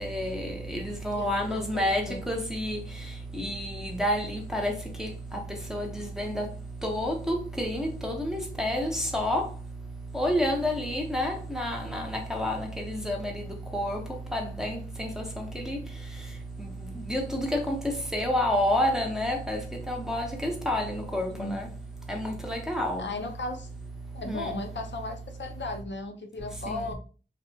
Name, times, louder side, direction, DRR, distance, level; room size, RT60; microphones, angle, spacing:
voice 1, 0.0-2.8 3.4-4.7 5.0-5.1 5.7-6.4 6.8-9.4 10.1-12.0 12.3-13.2 13.7-14.0 14.3-15.1 15.4-15.8 17.1-17.8 18.1-19.6 19.9-21.6 22.1-23.0 24.3-24.5, left 1 dB, ahead, 0.7 m, -29 dB
voice 2, 1.1-2.2 21.3-21.6 23.0-23.7 24.1-26.9, left 2 dB, 65° left, 0.5 m, -36 dB
2.6 x 2.1 x 2.6 m
wide cardioid pair, 50°, 20 cm